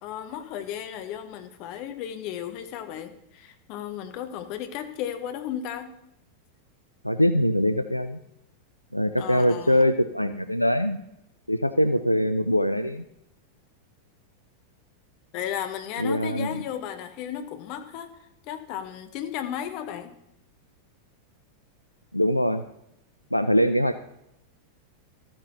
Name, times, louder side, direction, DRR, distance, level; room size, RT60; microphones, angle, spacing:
voice 1, 0.0-5.9 9.2-9.9 15.3-20.1, left 10 dB, 45° left, 8 dB, 0.9 m, -34 dB
voice 2, 7.0-8.2 8.9-11.0 11.5-13.0 16.0-16.6 22.1-22.6 23.3-24.0, equal, 90° left, 10 dB, 0.3 m, -23 dB
13.5 x 8.8 x 3.0 m, 0.81 s
figure-of-eight pair, 90°, 0 cm